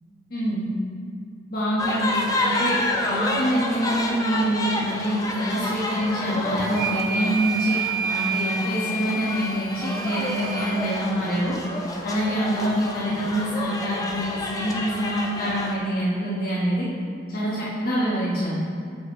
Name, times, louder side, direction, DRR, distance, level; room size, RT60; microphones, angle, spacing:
voice 1, 0.3-0.6 1.5-2.8 3.0-7.8 8.1-11.6 12.0-16.9 17.3-18.6, equal, 55° left, -9 dB, 1.3 m, -25 dB
sound 1, 1.8-15.8, left 1 dB, 20° left, 0.6 m, -29 dB
sound 2, 6.7-10.9, right 4 dB, 55° right, 0.5 m, -30 dB
6.3 x 5.2 x 4.6 m, 2.3 s
head